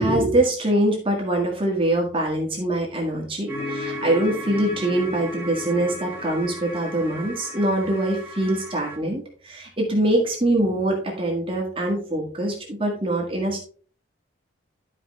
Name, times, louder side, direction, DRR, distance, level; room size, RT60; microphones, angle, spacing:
voice 1, 0.0-13.6, right 1 dB, 25° right, -1 dB, 1.7 m, -23 dB
sound 1, 3.5-9.0, left 1 dB, 10° right, 1.7 m, -34 dB
12.0 x 4.9 x 3.1 m, 0.43 s
head